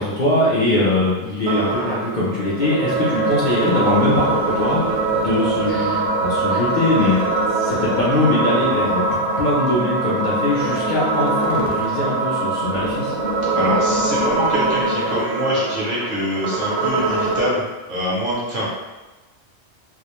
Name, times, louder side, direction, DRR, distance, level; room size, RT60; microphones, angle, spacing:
voice 1, 0.0-7.1 7.6-9.0 9.4-13.1, left 2 dB, 55° left, -7 dB, 0.5 m, -21 dB
sound 1, 1.5-17.5, right 3 dB, 85° right, 0.9 m, -22 dB
voice 2, 7.0-7.3 13.5-18.7, equal, 55° right, -6 dB, 0.7 m, -24 dB
2.3 x 2.0 x 2.9 m, 1.1 s
omnidirectional pair, 1.2 m